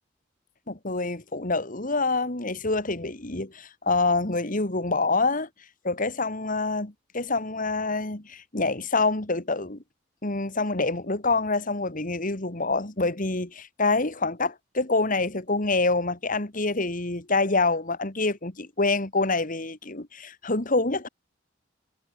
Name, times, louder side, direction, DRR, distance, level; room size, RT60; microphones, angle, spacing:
voice 1, 0.7-5.5 5.8-6.9 7.1-9.8 10.2-21.1, left 3 dB, 45° left, 2.4 m, -26 dB
head